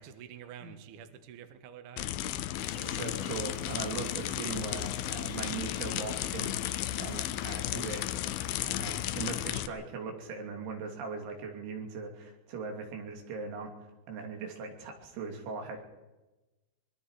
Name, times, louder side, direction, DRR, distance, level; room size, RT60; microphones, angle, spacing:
voice 1, 0.0-2.1, right 9 dB, 60° right, 8 dB, 2.4 m, -48 dB
sound 1, 2.0-9.7, left 13 dB, 85° left, 2.1 m, -34 dB
sound 2, 2.6-9.6, left 6 dB, 60° left, 2.7 m, -48 dB
voice 2, 2.8-8.1 8.6-15.8, right 4 dB, 85° right, 3 dB, 5.2 m, -40 dB
24.5 x 22.0 x 4.9 m, 1.1 s
omnidirectional pair, 5.2 m